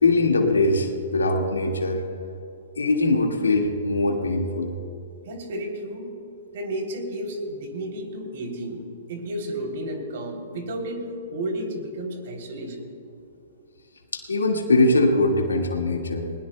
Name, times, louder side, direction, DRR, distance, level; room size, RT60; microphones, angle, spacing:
voice 1, 0.0-2.0 2.8-4.7 14.1-16.3, left 2 dB, 90° left, 2 dB, 1.8 m, -21 dB
voice 2, 5.3-6.1 6.5-8.8 9.1-12.8, right 1 dB, 60° right, 3 dB, 3.1 m, -32 dB
20.5 x 20.0 x 2.2 m, 2.8 s
hypercardioid pair, 125°, 0 cm